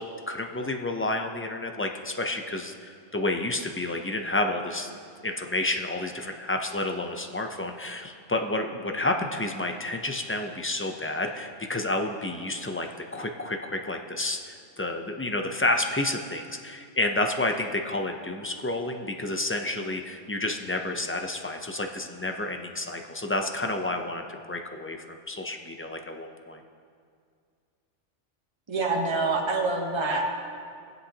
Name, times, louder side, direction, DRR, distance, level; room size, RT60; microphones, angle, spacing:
voice 1, 0.0-4.9 5.2-25.0 25.3-26.6, left 2 dB, 20° left, 4 dB, 0.4 m, -30 dB
voice 2, 28.7-30.4, right 3 dB, 25° right, 0 dB, 1.0 m, -26 dB
21.5 x 8.0 x 2.9 m, 2.2 s
omnidirectional pair, 1.2 m